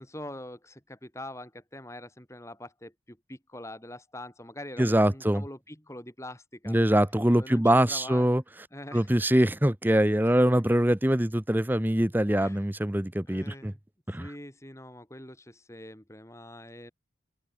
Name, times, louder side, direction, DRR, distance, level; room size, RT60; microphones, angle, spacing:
voice 1, 0.0-6.8 7.3-8.3 8.7-9.2 10.2-10.4 12.4-12.7 13.3-13.8 14.2-16.9, left 1 dB, 15° left, 6.9 m, -44 dB
voice 2, 4.8-5.4 6.7-8.4 8.9-13.7 14.1-14.3, right 1 dB, 10° right, 0.9 m, -23 dB
head